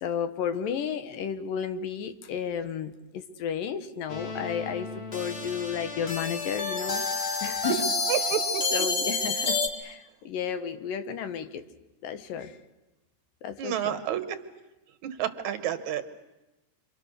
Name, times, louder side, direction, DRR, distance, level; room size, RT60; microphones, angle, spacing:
voice 1, 0.0-7.1 7.4-7.9 8.7-11.6 12.0-12.6 13.4-14.0, left 8 dB, 80° left, 10 dB, 2.8 m, -33 dB
sound 1, 4.1-9.7, left 3 dB, 40° left, 0.9 m, -30 dB
voice 2, 8.1-8.6 13.6-14.3 15.2-16.2, right 10 dB, 65° right, 9 dB, 2.4 m, -29 dB
28.5 x 25.0 x 6.5 m, 1.0 s
omnidirectional pair, 3.9 m